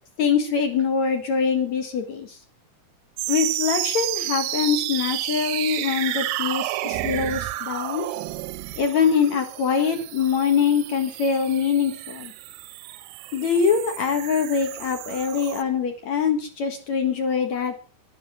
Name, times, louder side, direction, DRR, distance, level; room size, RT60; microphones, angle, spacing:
voice 1, 0.2-2.4 3.3-8.1 8.8-12.3 13.3-17.7, left 6 dB, 55° left, 5 dB, 2.5 m, -23 dB
sound 1, 3.2-15.6, right 16 dB, 75° right, 2.5 m, -31 dB
12.5 x 11.0 x 6.2 m, 0.37 s
omnidirectional pair, 4.7 m